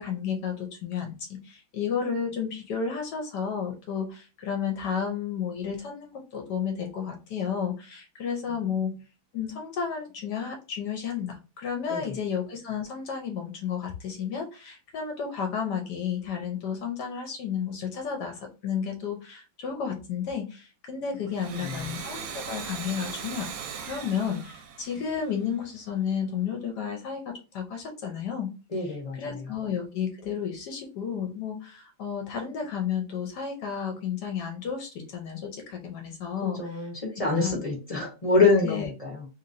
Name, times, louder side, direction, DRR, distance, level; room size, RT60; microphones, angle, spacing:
voice 1, 0.0-8.9 9.3-28.5 28.8-36.9 37.3-37.5 38.6-38.9, left 7 dB, 70° left, 3 dB, 1.1 m, -32 dB
Domestic sounds home sounds, 21.2-25.7, right 6 dB, 70° right, 1.1 m, -39 dB
voice 2, 21.5-21.8 28.7-29.5 36.4-39.3, left 3 dB, 40° left, -1 dB, 0.5 m, -26 dB
3.0 x 2.9 x 2.5 m, 0.32 s
omnidirectional pair, 2.2 m